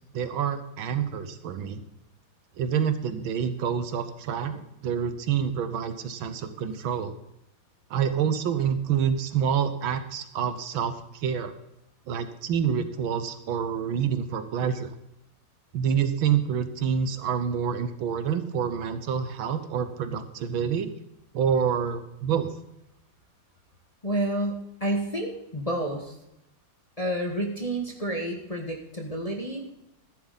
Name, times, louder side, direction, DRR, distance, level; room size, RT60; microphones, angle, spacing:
voice 1, 0.1-1.8 2.6-4.6 4.8-7.1 7.9-11.5 12.1-14.9 15.7-20.9 21.3-22.5, right 7 dB, 75° right, 11 dB, 1.7 m, -27 dB
voice 2, 24.0-26.1 27.0-29.6, right 1 dB, 20° left, 0 dB, 1.3 m, -30 dB
13.5 x 11.0 x 4.0 m, 0.83 s
omnidirectional pair, 2.3 m